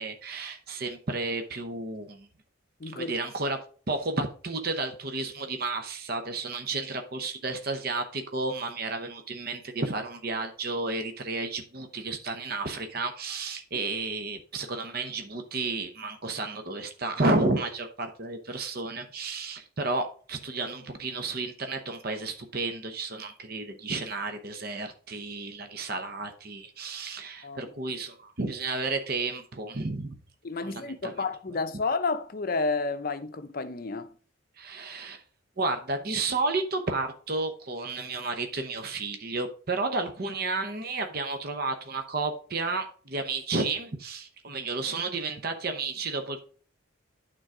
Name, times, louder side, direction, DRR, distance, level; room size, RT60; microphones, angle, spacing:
voice 1, 0.0-2.3 2.9-3.6 3.9-30.2 30.6-31.1 34.6-35.2 35.6-46.4, right 3 dB, 45° right, 0.8 m, -32 dB
voice 2, 2.8-3.1 27.4-27.7 30.4-34.1, left 3 dB, 45° left, 0.6 m, -31 dB
9.1 x 3.8 x 4.8 m
head